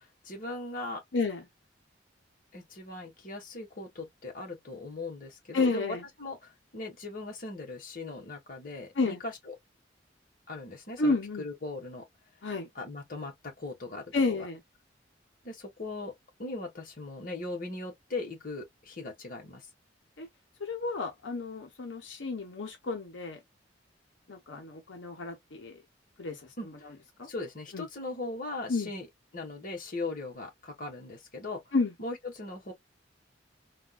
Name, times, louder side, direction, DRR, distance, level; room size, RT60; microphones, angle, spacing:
voice 1, 0.0-1.0 2.5-9.5 10.5-12.0 12.7-14.5 15.4-16.1 16.4-19.7 26.6-26.9 27.3-29.1 29.3-31.7 32.0-32.7, left 2 dB, 50° left, 1.5 m, -39 dB
voice 2, 1.1-1.5 5.5-6.0 9.0-9.2 11.0-11.5 12.4-12.7 14.1-14.6 20.2-20.3 20.6-23.4 24.3-25.8 26.2-26.7 27.2-27.3 27.7-27.8 28.7-28.9 31.7-31.9, left 3 dB, 85° left, 1.1 m, -31 dB
3.6 x 2.7 x 2.3 m
head